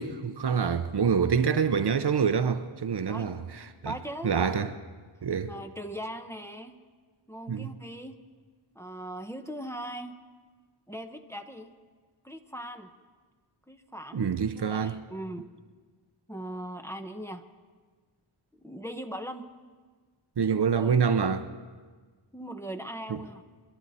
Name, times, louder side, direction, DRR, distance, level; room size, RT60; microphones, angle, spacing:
voice 1, 0.0-3.4 3.8-3.9 4.2-4.7 5.2-5.5 7.5-7.7 14.1-15.0 20.4-21.5 23.1-23.2, right 6 dB, 55° right, 0.8 m, -26 dB
voice 2, 3.8-4.3 5.5-6.8 7.3-8.1 8.7-10.2 10.9-11.7 12.2-12.9 13.7-15.5 16.3-17.4 18.6-19.5 20.5-21.0 22.3-23.4, right 1 dB, 5° left, 0.8 m, -39 dB
27.5 x 11.5 x 4.1 m
wide cardioid pair, 70°, 47 cm